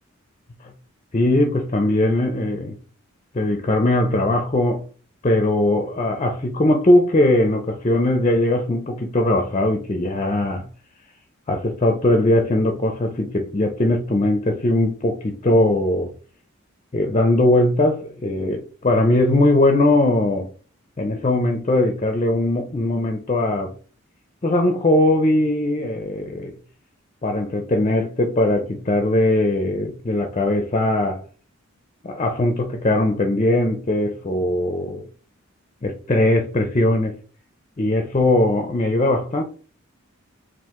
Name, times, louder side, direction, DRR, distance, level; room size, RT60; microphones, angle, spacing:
voice 1, 1.1-2.8 3.3-4.8 5.2-10.6 11.5-16.1 16.9-20.5 21.0-23.7 24.4-26.5 27.2-31.2 32.0-35.0 35.8-37.1 37.8-39.4, left 1 dB, 30° left, 0.5 m, -20 dB
4.4 x 2.5 x 3.6 m
head